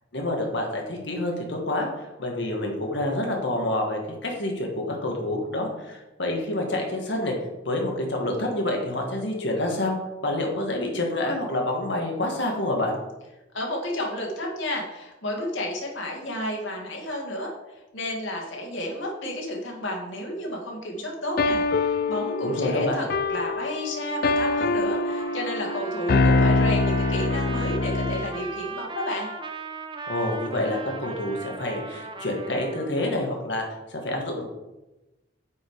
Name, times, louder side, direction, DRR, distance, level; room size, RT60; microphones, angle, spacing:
voice 1, 0.1-1.9 2.2-7.3 7.7-10.0 10.2-12.9 22.4-23.0 30.1-33.6 33.9-34.4, left 1 dB, 70° left, 1 dB, 1.9 m, -27 dB
voice 2, 13.5-17.5 17.9-29.3, left 1 dB, 90° left, 0 dB, 2.1 m, -31 dB
sound 1, 21.4-28.3, left 3 dB, 50° left, 0.4 m, -24 dB
Trumpet, 24.5-32.9, right 3 dB, 25° right, 0.7 m, -38 dB
8.2 x 5.1 x 4.8 m, 1.0 s
head